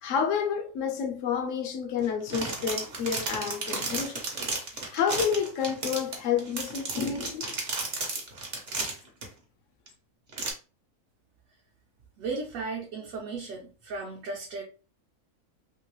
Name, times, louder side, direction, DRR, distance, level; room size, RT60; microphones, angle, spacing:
voice 1, 0.0-4.2 4.9-7.6, left 7 dB, 70° left, 0.8 m, -29 dB
sound 1, 2.0-9.3 9.9-10.0 10.3-10.5, right 3 dB, 45° right, 1.0 m, -33 dB
voice 2, 12.2-14.6, right 4 dB, 65° right, 1.2 m, -35 dB
3.0 x 2.8 x 3.1 m
omnidirectional pair, 1.6 m